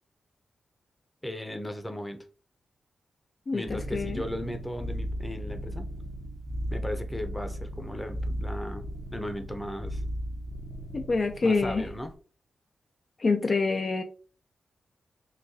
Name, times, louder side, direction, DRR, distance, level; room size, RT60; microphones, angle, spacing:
voice 1, 1.2-2.2 3.5-5.9 6.7-10.0 11.4-12.1, left 1 dB, 15° left, 7 dB, 0.6 m, -37 dB
voice 2, 3.5-4.2 10.9-11.8 13.2-14.0, left 3 dB, 50° left, 5 dB, 0.3 m, -26 dB
sound 1, 3.7-12.2, equal, 55° right, 0.7 m, -36 dB
3.8 x 2.2 x 2.7 m, 0.39 s
cardioid pair, 50°, 0 cm